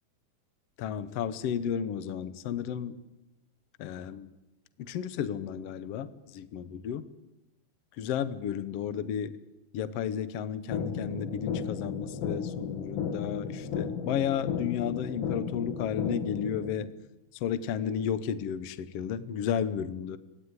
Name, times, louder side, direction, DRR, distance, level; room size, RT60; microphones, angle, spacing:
voice 1, 0.8-3.0 3.8-4.3 4.8-7.1 8.0-9.4 9.7-16.9 17.4-20.2, left 8 dB, 85° left, 14 dB, 1.3 m, -33 dB
sound 1, 10.7-16.7, left 6 dB, 70° left, 4.4 m, -34 dB
26.0 x 17.5 x 9.6 m, 0.97 s
omnidirectional pair, 4.3 m